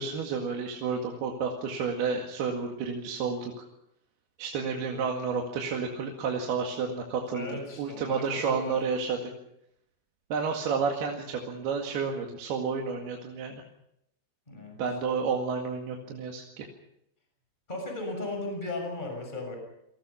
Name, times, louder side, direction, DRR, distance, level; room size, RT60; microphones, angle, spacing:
voice 1, 0.0-3.6 4.4-7.5 7.8-9.3 10.3-13.6 14.8-16.7, right 5 dB, 80° right, 1 dB, 3.9 m, -31 dB
voice 2, 7.3-8.8 14.5-14.8 17.7-19.6, left 2 dB, 10° left, 3 dB, 6.5 m, -36 dB
28.5 x 20.5 x 5.7 m, 0.78 s
omnidirectional pair, 4.5 m